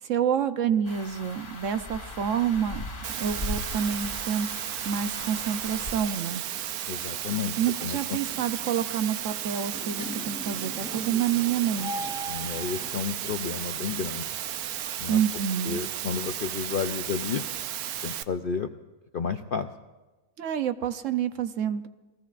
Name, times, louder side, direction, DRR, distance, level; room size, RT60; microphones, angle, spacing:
voice 1, 0.0-2.8 3.2-4.5 4.8-6.4 7.6-12.1 15.1-15.8 20.4-21.9, right 8 dB, 65° right, 10 dB, 1.0 m, -28 dB
sound 1, 0.8-5.9, left 1 dB, 35° left, 2.8 m, -38 dB
Water, 3.0-18.2, right 11 dB, 90° right, 1.2 m, -34 dB
voice 2, 6.9-7.5 7.8-8.2 12.3-14.3 15.0-15.2 15.6-17.4 18.0-18.7 19.1-19.7, left 6 dB, 60° left, 7 dB, 0.5 m, -31 dB
sound 2, 8.2-13.3, equal, 5° right, 2.7 m, -40 dB
29.0 x 19.5 x 2.5 m, 1.2 s
omnidirectional pair, 1.5 m